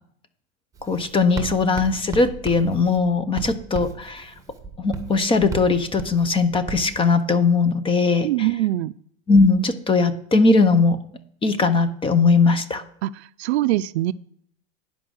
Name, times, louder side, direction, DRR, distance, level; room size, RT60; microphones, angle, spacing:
Writing, 0.7-7.0, right 5 dB, 10° right, 1.4 m, -35 dB
voice 1, 0.8-4.3 4.8-8.3 9.3-11.0 11.4-12.8, left 4 dB, 15° left, 12 dB, 0.7 m, -19 dB
voice 2, 8.2-8.9 13.0-14.1, right 15 dB, 65° right, 16 dB, 0.5 m, -23 dB
10.5 x 5.3 x 6.3 m, 0.66 s
hypercardioid pair, 120°, 35 cm